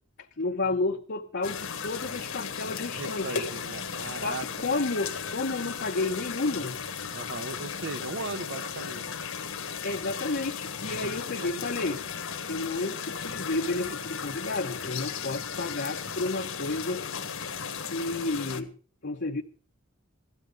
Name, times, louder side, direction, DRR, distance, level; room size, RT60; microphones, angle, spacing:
voice 1, 0.4-3.5 4.2-6.8 9.8-12.0 12.5-17.1 17.9-18.7 19.0-19.4, left 3 dB, 55° left, 1.0 m, -31 dB
sound 1, 1.4-18.6, left 6 dB, 75° left, 1.7 m, -36 dB
voice 2, 2.9-4.5 7.1-9.3 11.0-11.1 11.4-12.1, right 3 dB, 60° right, 1.3 m, -38 dB
16.5 x 12.5 x 5.2 m
head